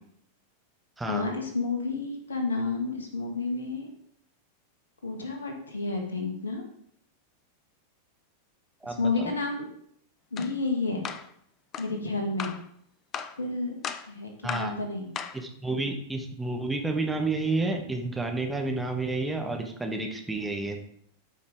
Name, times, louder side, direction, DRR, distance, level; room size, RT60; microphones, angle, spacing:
voice 1, 1.1-3.9 5.0-6.6 8.8-9.7 10.3-11.1 11.8-12.6 13.4-13.8 14.1-15.1, left 3 dB, 70° left, 3 dB, 1.8 m, -30 dB
voice 2, 8.8-9.3 14.4-14.7 15.3-20.8, right 3 dB, 5° right, 2 dB, 1.3 m, -30 dB
sound 1, 10.4-10.5 11.0-11.3 11.7-11.9 12.4-12.6 13.1-13.4 13.8-14.1 14.5-14.7 15.2-15.4, left 7 dB, 30° left, 0.6 m, -36 dB
12.5 x 5.4 x 3.5 m, 0.69 s
figure-of-eight pair, 90°, 0 cm